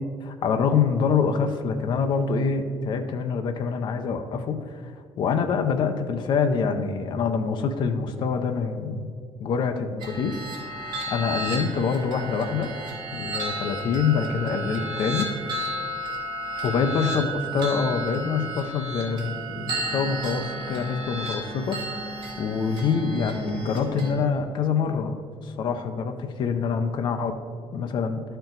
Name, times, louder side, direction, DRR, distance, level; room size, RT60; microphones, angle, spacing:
voice 1, 0.0-4.9 5.2-9.1 9.4-10.3 11.1-12.7 13.1-15.8 16.6-27.4 27.7-28.2, left 5 dB, 45° left, 7 dB, 0.5 m, -26 dB
sound 1, 10.0-24.1, right 1 dB, 45° right, 1.7 m, -33 dB
12.0 x 4.5 x 3.9 m, 2.1 s
cardioid pair, 175°, 11 cm